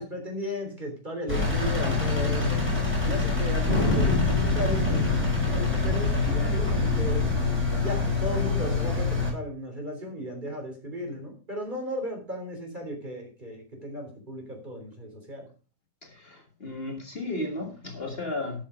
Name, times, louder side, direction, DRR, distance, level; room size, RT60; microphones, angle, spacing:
voice 1, 0.0-2.6 3.0-5.1 5.4-7.3 7.8-15.5, left 1 dB, 30° right, 2 dB, 3.5 m, -35 dB
Engine, 1.3-9.3, left 3 dB, 5° right, 6.0 m, -25 dB
Thunder, 3.7-8.8, left 1 dB, 20° left, 6.2 m, -30 dB
voice 2, 16.0-18.6, left 2 dB, 40° left, 2 dB, 1.9 m, -34 dB
13.0 x 6.4 x 5.0 m, 0.36 s
omnidirectional pair, 1.6 m